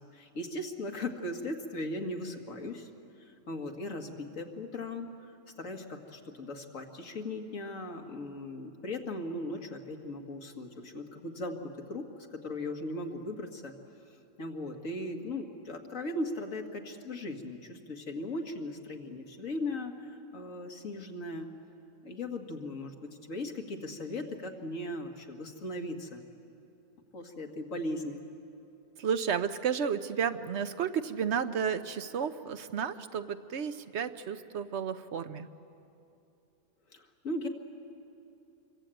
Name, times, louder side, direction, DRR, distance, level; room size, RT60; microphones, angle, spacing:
voice 1, 0.0-2.9 3.3-5.1 5.6-13.7 14.4-21.5 22.0-26.2 27.1-28.2 36.9-37.5, left 1 dB, 80° left, 3 dB, 2.2 m, -38 dB
voice 2, 29.0-35.5, right 7 dB, 60° right, 10 dB, 1.1 m, -32 dB
25.5 x 23.0 x 9.0 m, 2.7 s
omnidirectional pair, 1.3 m